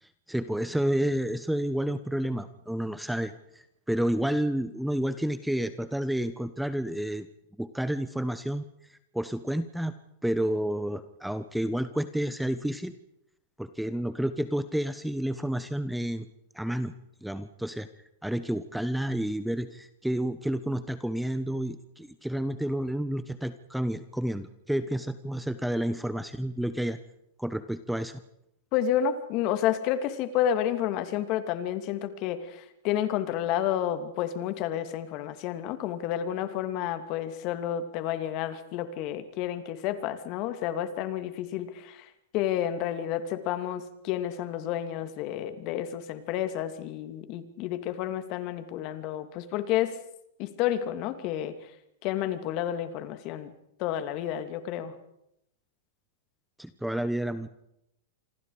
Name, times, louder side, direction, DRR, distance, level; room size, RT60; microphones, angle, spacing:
voice 1, 0.0-7.3 7.6-8.6 8.9-9.9 10.2-12.9 13.6-16.3 16.5-16.9 17.2-17.9 18.2-27.0 27.4-28.2 56.6-57.5, right 1 dB, ahead, 12 dB, 1.1 m, -30 dB
voice 2, 28.7-50.0 50.4-51.7 52.0-53.5 53.8-54.9, left 10 dB, 45° left, 10 dB, 2.7 m, -30 dB
27.0 x 25.0 x 5.0 m, 0.78 s
hypercardioid pair, 130°, 0 cm